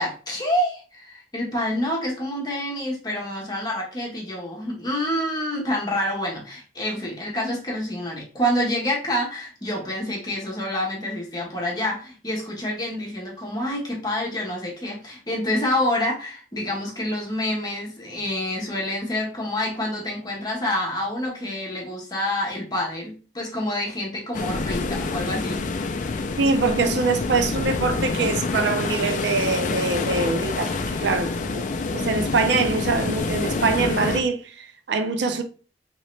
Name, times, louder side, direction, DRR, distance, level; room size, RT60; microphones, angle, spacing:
voice 1, 0.0-25.6, left 1 dB, 25° left, 1.0 m, -27 dB
sound 1, 24.3-34.2, left 3 dB, 45° left, 0.4 m, -27 dB
voice 2, 26.4-35.4, right 4 dB, 75° right, 0.5 m, -24 dB
3.0 x 2.8 x 3.1 m
head